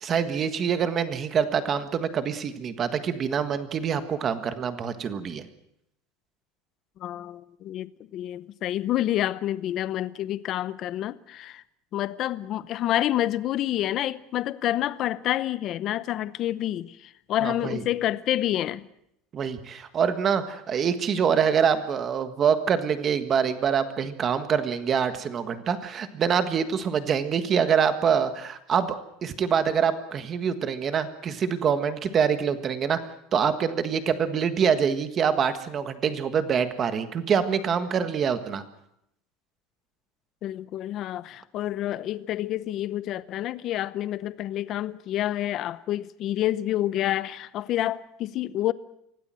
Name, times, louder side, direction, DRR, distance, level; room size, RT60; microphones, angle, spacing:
voice 1, 0.0-5.4 17.4-17.8 19.3-29.0 29.2-33.0 33.3-38.6, right 7 dB, 25° right, 1.5 m, -25 dB
voice 2, 7.0-11.6 11.9-18.8 40.4-48.7, left 13 dB, 35° left, 0.8 m, -28 dB
25.0 x 17.5 x 7.6 m
cardioid pair, 175°, 0 cm